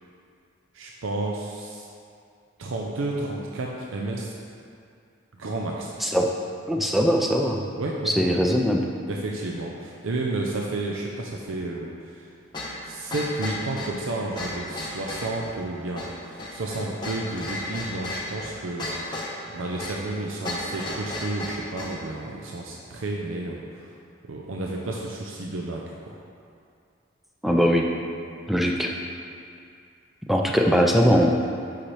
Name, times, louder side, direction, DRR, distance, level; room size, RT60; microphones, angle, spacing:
voice 1, 0.7-1.9 2.6-4.3 5.4-5.9 7.8-8.4 9.1-12.3 12.8-24.0 24.3-26.2, right 2 dB, 80° right, -1 dB, 0.6 m, -31 dB
voice 2, 6.7-7.6 8.1-8.8 27.4-27.9 28.5-28.9 30.3-31.3, equal, ahead, 1 dB, 0.4 m, -20 dB
sound 1, 12.5-22.0, left 1 dB, 20° left, 1.1 m, -34 dB
8.7 x 5.8 x 3.3 m, 2.4 s
head